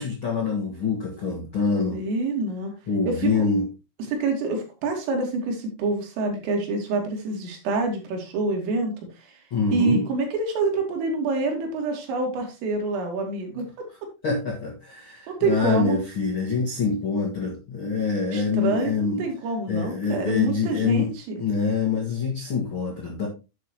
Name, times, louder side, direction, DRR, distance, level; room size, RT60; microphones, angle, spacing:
voice 1, 0.0-2.0 2.9-3.7 9.5-10.0 14.2-19.2 19.7-21.1 21.4-23.3, left 5 dB, 50° left, -2 dB, 1.5 m, -25 dB
voice 2, 1.9-2.7 3.1-3.5 4.1-9.4 9.7-13.7 15.3-16.0 18.3-21.4, right 3 dB, 75° right, 3 dB, 4.9 m, -26 dB
10.5 x 8.0 x 3.1 m, 0.28 s
omnidirectional pair, 5.8 m